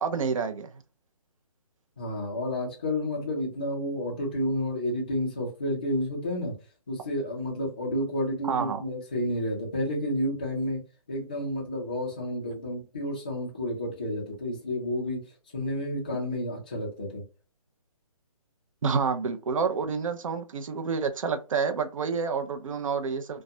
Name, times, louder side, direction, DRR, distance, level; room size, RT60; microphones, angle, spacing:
voice 1, 0.0-0.7 8.4-8.8 18.8-23.4, right 5 dB, 60° right, 0.5 m, -28 dB
voice 2, 2.0-6.5 6.9-10.8 11.1-15.3 15.5-17.2, left 1 dB, 15° left, 0.3 m, -30 dB
2.3 x 2.1 x 2.6 m
hypercardioid pair, 165°, 19 cm